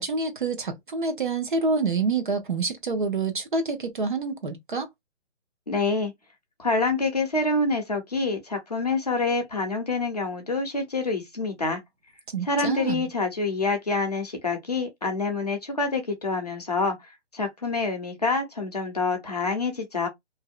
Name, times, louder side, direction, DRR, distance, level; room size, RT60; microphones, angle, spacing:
voice 1, 0.0-4.9 12.3-13.1, right 4 dB, 45° right, 0.7 m, -27 dB
voice 2, 5.7-6.1 6.6-11.8 12.4-17.0 17.3-20.1, left 3 dB, 35° left, 0.6 m, -26 dB
2.6 x 2.1 x 2.3 m
hypercardioid pair, 175°, 36 cm